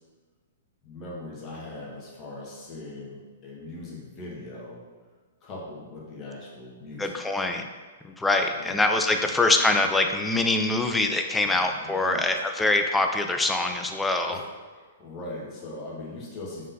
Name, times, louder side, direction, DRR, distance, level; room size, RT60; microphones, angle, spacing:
voice 1, 0.8-4.8 5.4-7.2 8.6-8.8 11.4-12.2 14.3-16.7, left 2 dB, 30° left, -4 dB, 1.3 m, -40 dB
voice 2, 7.0-7.7 8.0-14.4, left 2 dB, 10° left, 4 dB, 0.3 m, -24 dB
5.1 x 3.8 x 2.6 m, 1.4 s
figure-of-eight pair, 110°, 0 cm